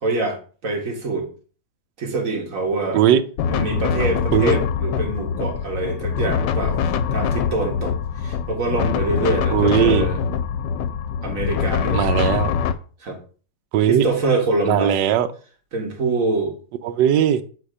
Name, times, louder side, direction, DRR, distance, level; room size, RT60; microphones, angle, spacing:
voice 1, 0.0-1.3 2.0-3.0 3.5-10.2 11.2-12.1 13.0-13.2 13.9-15.0 15.7-16.5, right 2 dB, 45° right, 1 dB, 1.8 m, -25 dB
sound 1, 3.4-12.7, left 7 dB, 75° left, 1.2 m, -23 dB
voice 2, 9.5-10.1 11.9-12.5 13.7-14.1 14.7-15.3 16.8-17.4, right 10 dB, 75° right, 11 dB, 1.2 m, -18 dB
8.0 x 2.8 x 4.8 m, 0.40 s
omnidirectional pair, 2.1 m